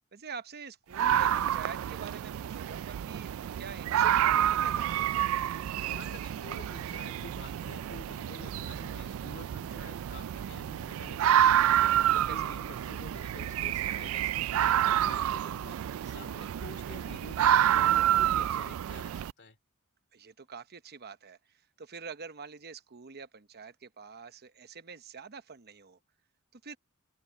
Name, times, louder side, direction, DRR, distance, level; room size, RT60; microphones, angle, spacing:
voice 1, 0.1-5.1 12.1-12.5 20.1-26.0 26.5-26.8, right 5 dB, 50° right, 1.0 m, -46 dB
sound 1, 0.9-19.3, right 11 dB, 70° right, 0.3 m, -28 dB
sound 2, 3.4-17.1, left 2 dB, 85° left, 5.9 m, -66 dB
voice 2, 5.8-11.7 12.3-19.6, left 3 dB, 55° left, 2.6 m, -49 dB
open air
head